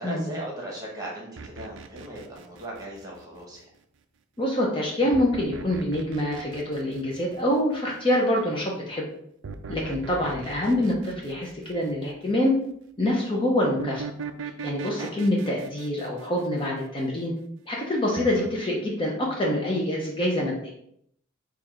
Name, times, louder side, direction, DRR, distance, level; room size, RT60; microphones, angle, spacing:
voice 1, 0.0-3.7 14.9-15.1, right 1 dB, 20° right, -3 dB, 1.3 m, -38 dB
sound 1, 1.4-3.6 5.1-7.8 9.4-12.3 13.8-17.2 18.2-18.5, right 5 dB, 65° right, 0.4 m, -40 dB
voice 2, 4.4-9.1 9.7-12.5 13.0-14.0 14.6-17.3 17.7-20.7, left 1 dB, 25° left, -2 dB, 0.6 m, -25 dB
4.5 x 2.4 x 4.7 m, 0.70 s
head